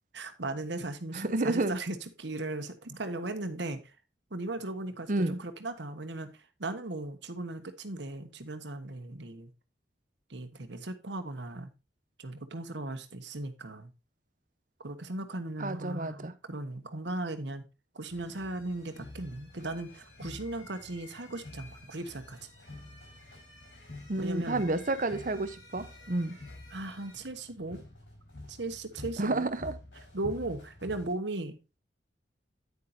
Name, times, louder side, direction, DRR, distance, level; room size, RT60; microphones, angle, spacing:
voice 1, 0.1-3.8 4.3-6.3 6.6-9.5 10.3-11.7 12.2-13.9 14.8-17.6 17.9-22.5 24.2-24.6 26.7-27.8 28.5-29.5 30.1-31.6, right 2 dB, 75° right, 1.4 m, -37 dB
voice 2, 1.1-1.7 5.1-5.4 15.6-16.3 24.1-26.4 29.2-29.7, right 2 dB, 45° right, 0.9 m, -30 dB
sound 1, 18.1-31.1, left 2 dB, 80° left, 5.3 m, -49 dB
9.6 x 9.3 x 2.7 m
head